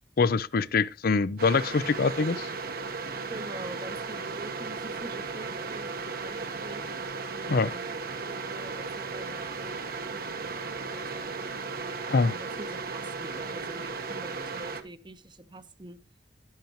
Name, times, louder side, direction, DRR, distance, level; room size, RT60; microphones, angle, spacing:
voice 1, 0.2-2.5 7.5-7.7 12.1-12.3, left 4 dB, 60° left, 0.5 m, -24 dB
sound 1, 1.4-14.8, right 4 dB, 55° right, 1.2 m, -36 dB
voice 2, 3.3-6.8 7.3-7.9 8.2-11.5 12.2-16.0, right 1 dB, 25° right, 0.9 m, -45 dB
11.5 x 10.5 x 3.0 m
head